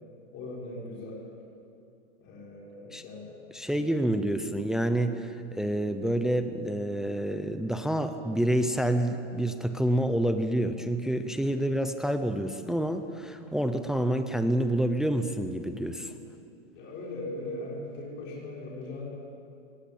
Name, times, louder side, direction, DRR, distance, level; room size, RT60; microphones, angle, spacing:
voice 1, 0.3-1.2 2.2-3.3 3.7-3.9 16.7-19.1, left 2 dB, 30° left, -4 dB, 6.0 m, -39 dB
voice 2, 3.5-16.1, right 1 dB, ahead, 9 dB, 0.6 m, -28 dB
24.0 x 18.5 x 8.7 m, 2.6 s
hypercardioid pair, 145°, 36 cm